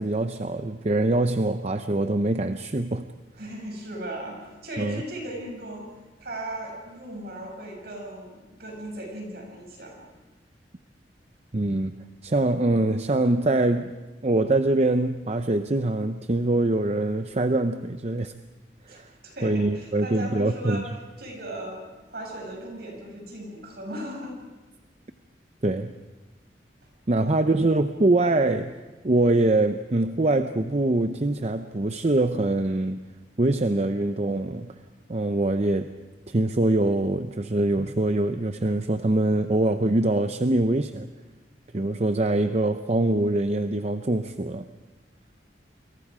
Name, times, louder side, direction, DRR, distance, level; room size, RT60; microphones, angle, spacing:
voice 1, 0.0-3.1 4.8-5.0 11.5-11.9 12.2-13.9 14.2-18.3 18.9-19.1 19.4-20.8 25.6-25.9 27.1-28.8 29.0-33.0 33.4-34.7 35.1-35.9 36.3-41.1 41.7-44.6, right 2 dB, 35° right, 8 dB, 0.7 m, -24 dB
voice 2, 3.4-5.9 6.2-10.0 18.9-20.9 21.2-24.3 27.2-27.5, right 1 dB, 60° right, 0 dB, 7.4 m, -37 dB
30.0 x 23.0 x 5.0 m, 1.2 s
head